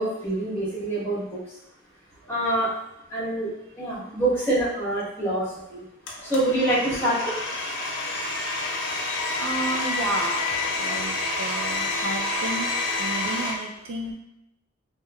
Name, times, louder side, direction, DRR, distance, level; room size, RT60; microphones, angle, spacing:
voice 1, 0.0-1.4 2.3-2.7 3.1-5.4 5.7-5.8 6.3-7.3, right 1 dB, 10° left, -10 dB, 1.0 m, -25 dB
Domestic sounds home sounds, 6.1-13.5, left 3 dB, 60° left, 0.5 m, -28 dB
voice 2, 9.1-12.7 13.0-14.1, right 2 dB, 65° right, 0 dB, 0.4 m, -32 dB
2.9 x 2.3 x 2.2 m, 0.86 s
head